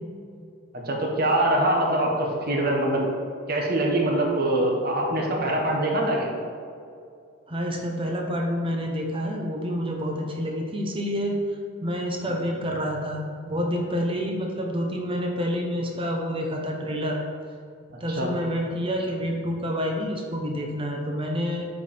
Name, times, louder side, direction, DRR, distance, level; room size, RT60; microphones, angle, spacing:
voice 1, 0.7-3.0 3.5-6.3 18.2-18.3, right 1 dB, 50° right, 0 dB, 1.3 m, -23 dB
voice 2, 7.5-11.4 11.8-17.2 18.0-21.7, equal, 25° right, 1 dB, 0.8 m, -28 dB
8.1 x 5.1 x 4.4 m, 2.4 s
head